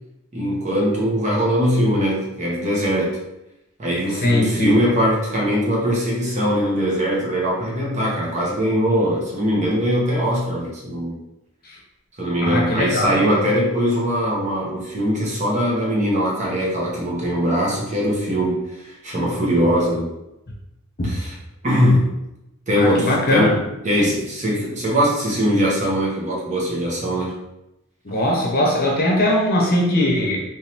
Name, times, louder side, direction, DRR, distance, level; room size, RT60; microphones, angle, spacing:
voice 1, 0.3-3.2 3.8-11.2 12.2-20.1 21.0-21.3 21.6-22.1 22.7-27.3, equal, 35° right, -4 dB, 1.0 m, -21 dB
voice 2, 4.1-4.7 11.6-11.8 12.4-13.3 21.0-21.2 22.8-23.5 28.0-30.4, left 1 dB, 45° left, -1 dB, 0.9 m, -20 dB
3.5 x 3.1 x 2.9 m, 0.90 s
head